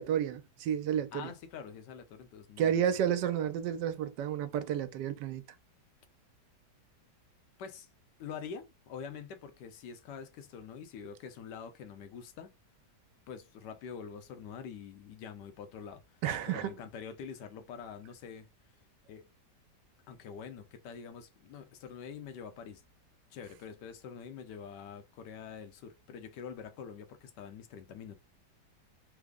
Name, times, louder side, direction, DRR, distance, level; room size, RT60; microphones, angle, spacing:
voice 1, 0.0-1.3 2.6-5.4 16.2-16.7, right 9 dB, 80° right, 1.2 m, -31 dB
voice 2, 1.1-2.8 7.6-7.9 8.2-12.5 13.3-18.5 19.1-19.3 20.1-22.8 23.3-28.2, left 7 dB, 80° left, 1.2 m, -45 dB
3.4 x 2.0 x 3.5 m
omnidirectional pair, 1.9 m